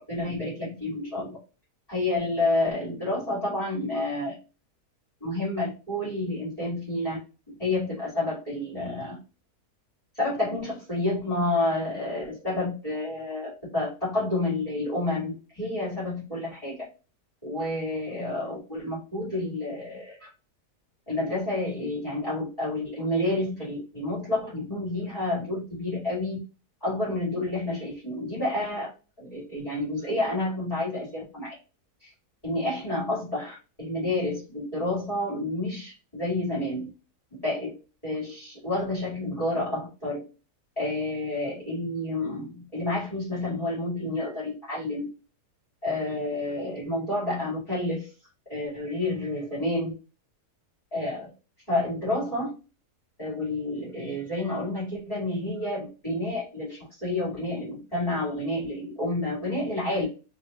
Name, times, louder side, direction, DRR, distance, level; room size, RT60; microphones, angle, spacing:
voice 1, 0.1-1.4 1.9-4.3 5.2-7.2 7.6-9.2 10.1-16.8 17.4-20.3 21.1-26.4 26.8-28.9 29.2-31.5 32.0-32.1 32.4-36.9 37.4-37.7 38.0-40.2 40.8-45.0 45.8-48.1 48.5-49.9 50.9-51.3 51.7-52.5 53.2-60.1, left 2 dB, 25° left, -9 dB, 2.3 m, -29 dB
3.3 x 3.2 x 3.0 m, 0.33 s
omnidirectional pair, 1.7 m